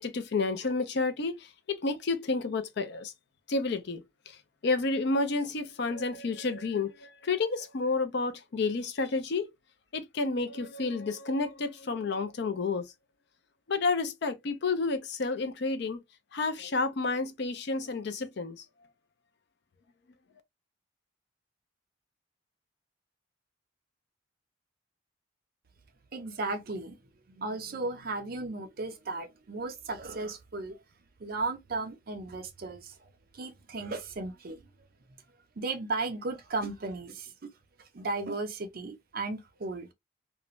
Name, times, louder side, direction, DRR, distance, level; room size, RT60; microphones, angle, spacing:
voice 1, 0.0-3.1 3.5-4.4 4.6-9.5 9.9-12.9 13.7-16.0 16.3-18.6, left 3 dB, 60° left, 0.5 m, -30 dB
voice 2, 26.1-27.0 27.3-30.8 31.2-32.9 33.3-34.7 35.6-37.3 37.9-39.9, right 3 dB, 50° right, 0.5 m, -35 dB
2.4 x 2.1 x 3.0 m
head